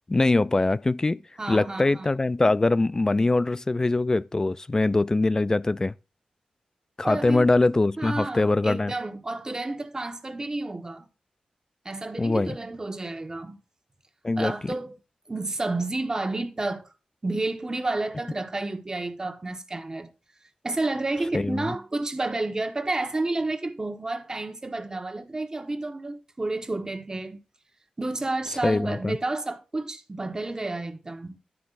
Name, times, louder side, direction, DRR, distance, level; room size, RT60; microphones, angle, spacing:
voice 1, 0.1-1.2 1.5-5.9 7.0-8.9 12.2-12.6 14.2-14.7 21.3-21.6 28.6-29.2, left 2 dB, 25° left, 0.4 m, -23 dB
voice 2, 1.4-2.1 7.0-7.5 8.0-11.1 11.8-13.6 14.4-15.0 15.3-16.9 17.2-20.1 20.6-27.4 28.0-31.4, right 2 dB, 30° right, 1.3 m, -30 dB
11.5 x 9.5 x 2.5 m
cardioid pair, 75°, 2 cm